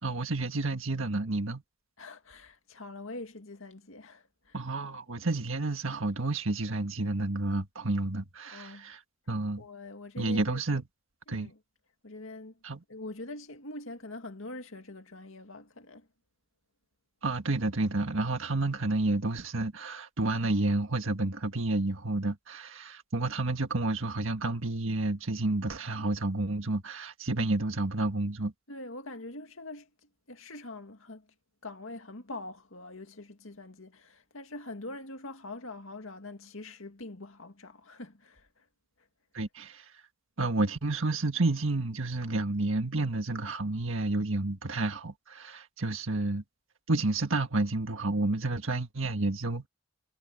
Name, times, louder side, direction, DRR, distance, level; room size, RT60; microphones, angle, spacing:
voice 1, 0.0-1.6 4.5-9.0 9.3-9.6 10.2-10.8 11.3-11.5 12.6-12.8 17.2-28.5 39.3-39.9 40.4-46.4 46.9-49.7, right 2 dB, 70° right, 1.7 m, -30 dB
voice 2, 2.0-4.6 8.4-8.9 9.6-10.6 11.3-11.6 12.0-12.6 12.9-16.1 28.7-31.3 31.6-38.7, left 2 dB, 70° left, 2.2 m, -44 dB
head